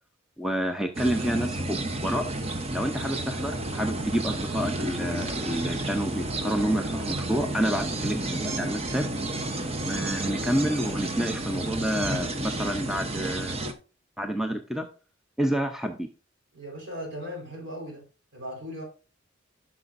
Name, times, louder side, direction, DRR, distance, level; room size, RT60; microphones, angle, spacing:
voice 1, 0.4-2.2 2.7-9.1 9.8-13.6 14.2-14.9 15.4-16.1, equal, ahead, 5 dB, 0.5 m, -29 dB
sound 1, 0.9-13.7, right 2 dB, 30° right, 0.8 m, -31 dB
voice 2, 16.5-18.0 18.3-18.8, equal, 55° right, 0 dB, 4.3 m, -37 dB
12.0 x 6.0 x 2.6 m, 0.34 s
head